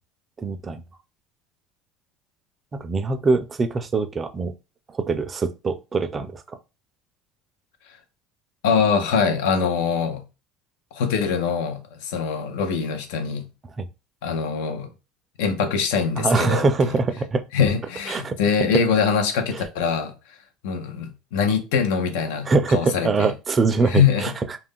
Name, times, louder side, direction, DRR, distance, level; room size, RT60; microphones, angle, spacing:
voice 1, 0.4-0.8 2.7-4.5 4.9-6.6 13.8-13.9 16.2-17.4 18.1-18.4 22.5-24.6, right 3 dB, 25° right, 0.4 m, -23 dB
voice 2, 8.6-10.2 10.9-13.4 14.2-14.9 15.4-16.9 17.5-20.1 20.6-23.3 23.9-24.3, left 6 dB, 80° left, 0.6 m, -23 dB
2.4 x 2.1 x 3.5 m
supercardioid pair, 105°, 0 cm